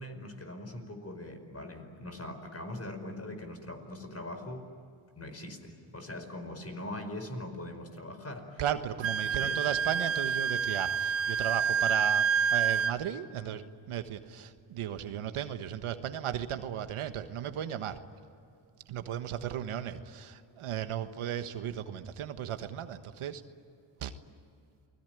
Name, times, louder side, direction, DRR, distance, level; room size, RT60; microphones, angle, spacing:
voice 1, 0.0-4.7 5.2-8.6 9.4-9.6, left 1 dB, 30° left, 7 dB, 5.1 m, -41 dB
voice 2, 8.6-18.0 18.9-23.4 24.0-24.1, right 10 dB, 85° right, 9 dB, 1.5 m, -35 dB
Wind instrument woodwind instrument, 9.0-12.9, right 6 dB, 65° right, 1.1 m, -28 dB
29.0 x 20.0 x 9.3 m, 2.5 s
cardioid pair, 70°, 49 cm